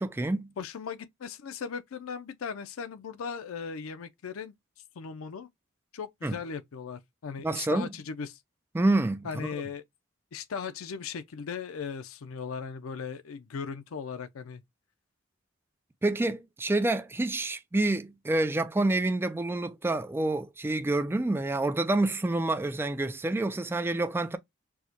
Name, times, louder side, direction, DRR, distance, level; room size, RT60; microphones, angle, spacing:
voice 1, 0.0-0.5 6.2-6.4 7.4-7.9 8.7-9.5 16.0-24.4, right 2 dB, 10° right, 0.3 m, -28 dB
voice 2, 0.6-4.5 5.0-5.5 5.9-8.4 9.2-9.8 10.3-14.6, left 6 dB, 85° left, 0.5 m, -38 dB
4.6 x 2.1 x 2.7 m
head